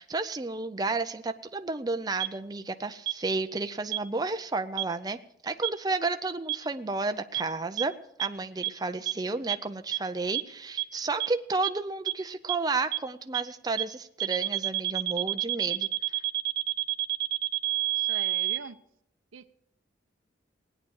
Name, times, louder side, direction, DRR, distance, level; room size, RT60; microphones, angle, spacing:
voice 1, 0.0-7.9 8.2-15.9, right 3 dB, 20° right, 8 dB, 0.5 m, -32 dB
sound 1, 2.2-2.3 3.1-3.2 3.9-4.0 4.8-4.9 5.6-5.7 6.5-6.6 7.3-7.4 7.8-7.9 8.2-8.3 8.6-8.7 9.1-9.2 9.5-9.6 9.9-10.0 10.3-10.4 10.8-10.9 11.2-11.3 11.6-11.7 12.1-12.2 12.5-12.6 12.9-13.0 13.3-13.4 13.8-13.9 14.2-18.6, right 18 dB, 60° right, 0.7 m, -28 dB
voice 2, 17.9-18.8 19.3-19.5, right 5 dB, 90° right, 12 dB, 0.7 m, -42 dB
17.0 x 9.7 x 6.4 m, 0.79 s
head